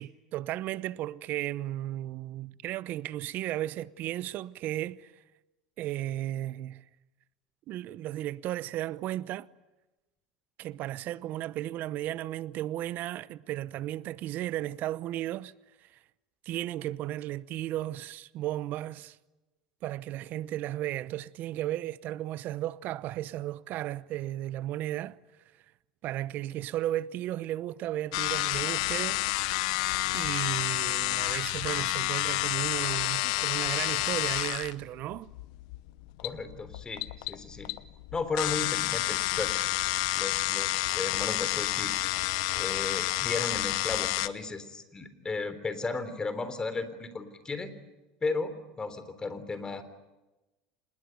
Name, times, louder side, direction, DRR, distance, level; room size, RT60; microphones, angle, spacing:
voice 1, 0.0-5.1 5.8-6.8 7.7-9.5 10.6-15.5 15.8-16.0 16.4-19.2 19.8-25.2 26.0-29.5 30.1-35.3, right 14 dB, 55° right, 0.9 m, -34 dB
sound 1, 28.1-44.3, left 19 dB, 75° left, 1.0 m, -30 dB
voice 2, 36.2-37.7 38.1-39.6 40.1-42.0 42.5-47.7 48.2-49.8, left 3 dB, 20° left, 3.6 m, -35 dB
26.5 x 20.5 x 9.2 m
hypercardioid pair, 90°, 4 cm